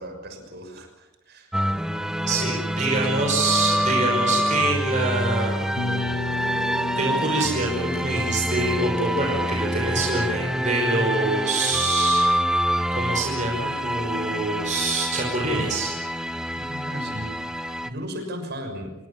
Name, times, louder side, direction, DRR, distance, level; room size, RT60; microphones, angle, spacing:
voice 1, 0.0-1.8 2.4-2.9 16.5-18.9, equal, 50° right, 5 dB, 6.5 m, -37 dB
sound 1, 1.5-17.9, equal, 5° right, 0.9 m, -26 dB
voice 2, 2.3-5.8 7.0-12.3 12.9-15.9, right 2 dB, 35° right, 0 dB, 5.5 m, -25 dB
sound 2, 5.8-11.5, left 2 dB, 85° left, 1.2 m, -35 dB
27.5 x 24.0 x 7.3 m, 1.0 s
head